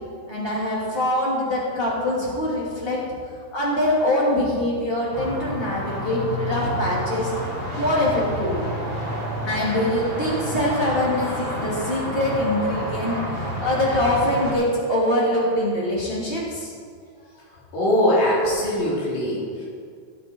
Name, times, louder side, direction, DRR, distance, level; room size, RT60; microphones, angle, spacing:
voice 1, 0.3-3.1 3.5-7.3 7.8-8.7 9.5-16.7, left 1 dB, 25° left, -5 dB, 1.4 m, -23 dB
sound 1, 5.1-14.5, equal, 25° right, 3.5 m, -29 dB
voice 2, 17.7-19.6, left 1 dB, 65° left, -7 dB, 5.5 m, -21 dB
17.5 x 8.5 x 4.5 m, 2.1 s
omnidirectional pair, 5.5 m